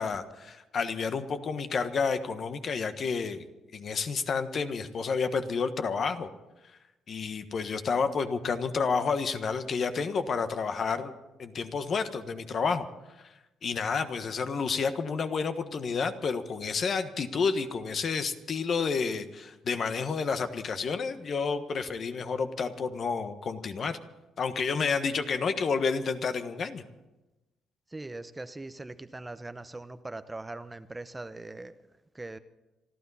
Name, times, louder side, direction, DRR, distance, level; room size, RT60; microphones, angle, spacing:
voice 1, 0.0-3.5 3.7-6.3 7.1-11.1 11.4-12.9 13.6-24.0 24.4-26.8, left 5 dB, 55° left, 9 dB, 1.3 m, -30 dB
voice 2, 27.9-31.7 32.1-32.4, right 2 dB, 15° right, 12 dB, 0.7 m, -41 dB
27.0 x 12.5 x 4.2 m, 1.0 s
cardioid pair, 90°, 0 cm